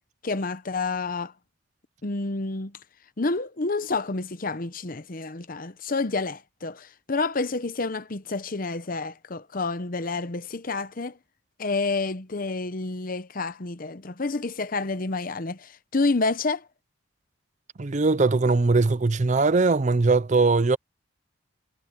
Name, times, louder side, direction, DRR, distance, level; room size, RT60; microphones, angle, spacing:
voice 1, 0.2-1.3 2.0-2.7 3.2-11.2 11.6-16.6, left 3 dB, 45° left, 0.8 m, -29 dB
voice 2, 17.8-20.8, right 3 dB, 35° right, 0.5 m, -20 dB
head